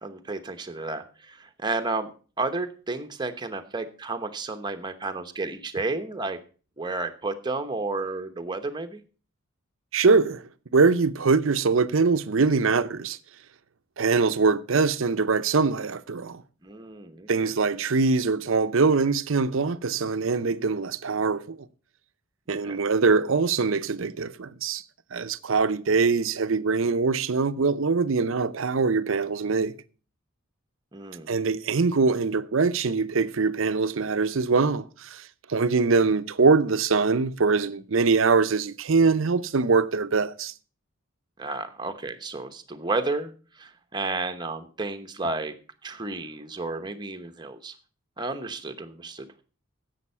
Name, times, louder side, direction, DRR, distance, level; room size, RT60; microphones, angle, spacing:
voice 1, 0.0-2.1 2.4-6.4 6.8-9.0 16.6-17.5 22.5-22.8 30.9-31.3 41.4-45.5 45.8-47.7 48.2-49.4, right 3 dB, 20° right, 1.0 m, -32 dB
voice 2, 9.9-10.4 10.7-13.2 14.0-16.4 17.3-21.6 22.5-24.8 25.1-29.7 31.3-40.5, right 4 dB, 65° right, 0.6 m, -23 dB
11.0 x 7.8 x 5.6 m
head